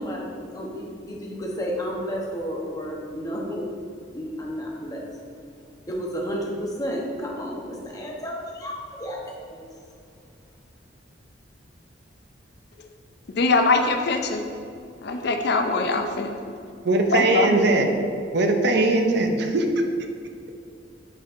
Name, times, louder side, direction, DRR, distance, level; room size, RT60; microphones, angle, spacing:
voice 1, 0.0-3.7 4.1-5.1 5.9-9.6, equal, 20° left, -2 dB, 0.8 m, -32 dB
voice 2, 13.3-14.4 15.0-16.5 17.1-17.5, left 3 dB, 60° left, 5 dB, 0.4 m, -22 dB
voice 3, 16.8-17.9 18.3-19.7, right 2 dB, 60° right, 4 dB, 0.5 m, -20 dB
8.5 x 4.4 x 2.5 m, 2.4 s
head